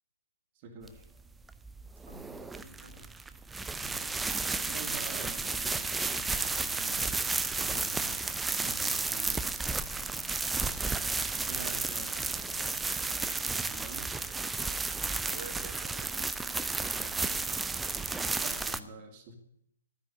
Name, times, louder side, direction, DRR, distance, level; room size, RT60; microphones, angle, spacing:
voice 1, 0.5-1.1 3.8-4.3 4.6-9.7 10.0-10.4 11.4-13.3 13.7-14.1 16.9-17.5 18.2-19.3, right 2 dB, 35° right, 5 dB, 2.4 m, -48 dB
sound 1, 0.9-18.8, right 3 dB, 5° right, 0.5 m, -33 dB
voice 2, 2.1-3.1 15.3-16.4 16.9-17.1, right 3 dB, 60° right, 7 dB, 2.7 m, -49 dB
12.0 x 9.8 x 9.7 m, 0.74 s
figure-of-eight pair, 125°, 0 cm